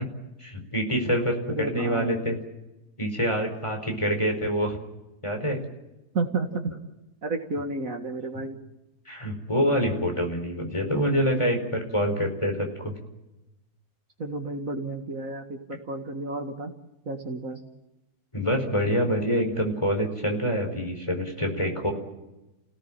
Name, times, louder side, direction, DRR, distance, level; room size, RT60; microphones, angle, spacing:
voice 1, 0.4-2.4 3.0-4.8 5.2-5.6 8.3-8.4 9.1-12.9 18.3-21.9, equal, 20° left, 3 dB, 4.7 m, -26 dB
voice 2, 1.5-2.2 6.1-6.7 7.2-8.6 14.2-16.7 17.1-17.6, right 3 dB, 60° right, 5 dB, 2.2 m, -31 dB
29.0 x 17.5 x 9.0 m, 1.0 s
omnidirectional pair, 1.7 m